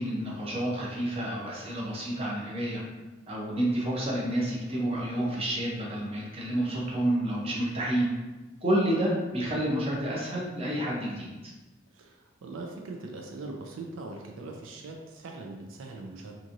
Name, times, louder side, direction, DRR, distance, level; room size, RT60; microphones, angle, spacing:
voice 1, 0.0-2.8 3.3-8.1 8.6-11.3, right 1 dB, 30° right, -4 dB, 0.6 m, -29 dB
voice 2, 11.9-16.4, right 3 dB, 85° right, 2 dB, 0.4 m, -41 dB
2.9 x 2.5 x 2.5 m, 1.1 s
head